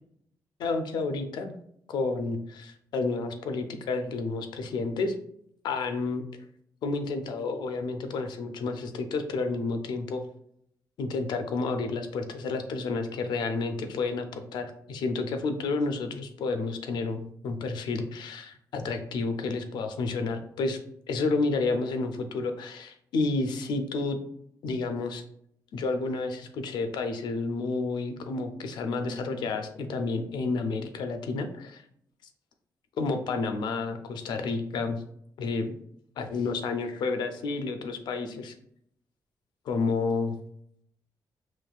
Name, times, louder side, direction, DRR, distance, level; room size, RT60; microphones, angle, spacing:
voice 1, 0.6-1.5 1.9-5.2 5.6-6.2 6.8-10.2 11.0-20.8 21.1-24.2 24.6-25.2 25.7-31.8 33.0-35.0 35.4-35.7 36.2-38.5 39.7-40.4, left 3 dB, 85° left, 7 dB, 0.5 m, -30 dB
5.2 x 3.1 x 2.3 m, 0.71 s
wide cardioid pair, 175°, 7 cm